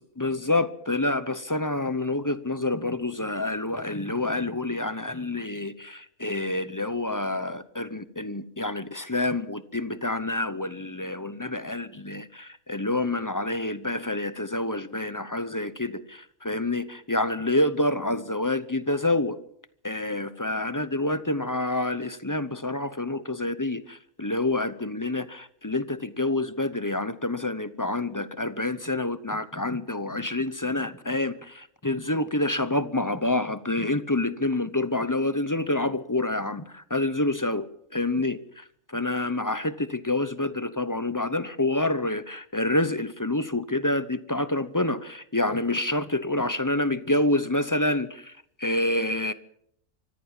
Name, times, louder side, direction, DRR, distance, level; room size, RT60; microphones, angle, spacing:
voice 1, 0.2-19.4 19.8-37.7 37.9-48.3 48.6-49.3, left 2 dB, 20° left, 0.7 m, -27 dB
25.0 x 14.5 x 7.3 m
omnidirectional pair, 1.4 m